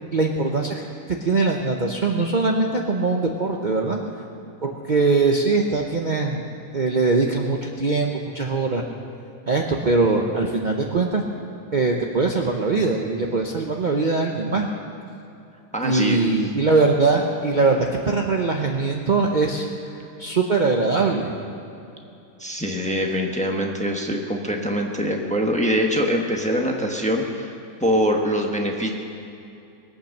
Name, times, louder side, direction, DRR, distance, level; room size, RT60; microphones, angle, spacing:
voice 1, 0.1-4.0 4.6-6.5 6.7-8.8 9.5-11.2 11.7-14.7 15.8-19.7 19.9-21.3, right 3 dB, 40° right, 1 dB, 0.9 m, -22 dB
voice 2, 15.7-16.2 22.4-27.5 27.8-28.9, equal, 5° left, 1 dB, 1.2 m, -23 dB
21.0 x 8.7 x 6.6 m, 2.7 s
omnidirectional pair, 1.6 m